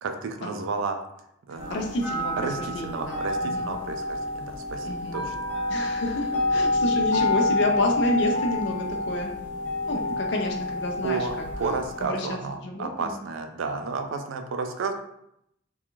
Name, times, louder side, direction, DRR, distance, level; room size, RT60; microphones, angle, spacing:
voice 1, 0.0-1.0 1.5-1.9 2.4-5.4 11.0-14.9, right 4 dB, 70° right, 6 dB, 0.3 m, -32 dB
sound 1, 1.6-12.0, left 2 dB, 10° left, 0.7 m, -28 dB
voice 2, 1.7-3.7 4.8-5.2 5.7-9.3 9.9-11.3 11.6-11.7 12.0-12.3 12.6-13.2, left 1 dB, 60° left, 1 dB, 0.4 m, -29 dB
2.4 x 2.3 x 2.9 m, 0.78 s
head